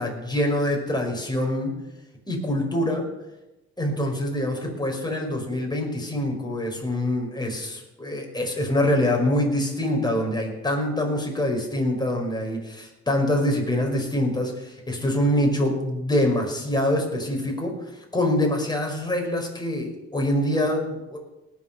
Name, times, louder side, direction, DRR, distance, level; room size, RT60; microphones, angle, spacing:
voice 1, 0.0-1.7 2.3-3.1 3.8-17.7 18.1-21.2, left 1 dB, 15° left, 1 dB, 5.3 m, -25 dB
18.5 x 7.5 x 6.3 m, 0.98 s
hypercardioid pair, 55°, 30 cm